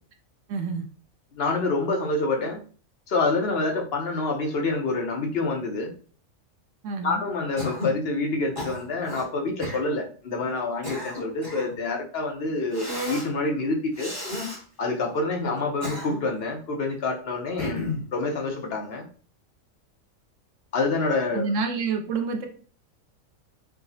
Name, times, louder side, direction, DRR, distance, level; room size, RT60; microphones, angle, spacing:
voice 1, 0.5-0.8 6.8-7.2 21.3-22.5, right 4 dB, 70° right, 5 dB, 0.9 m, -28 dB
voice 2, 1.4-2.6 3.1-5.9 7.0-14.1 14.8-19.1 20.7-21.5, left 3 dB, 55° left, 1 dB, 0.8 m, -27 dB
Cough, 7.6-8.0 8.6-9.3 9.6-9.8 10.6-11.7 12.7-13.3 14.0-14.6 15.6-16.4 17.6-18.1, left 2 dB, 20° left, 1.0 m, -32 dB
4.7 x 2.0 x 2.6 m, 0.42 s
omnidirectional pair, 1.4 m